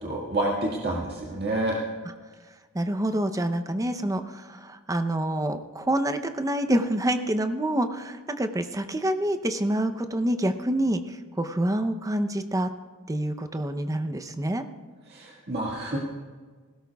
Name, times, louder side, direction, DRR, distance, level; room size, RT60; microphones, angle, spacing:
voice 1, 0.0-1.8 15.1-16.0, right 1 dB, 50° right, -3 dB, 1.8 m, -28 dB
voice 2, 2.7-11.0 11.4-12.7 13.1-14.6, right 1 dB, 15° right, 8 dB, 0.6 m, -27 dB
20.0 x 17.0 x 2.3 m, 1.5 s
head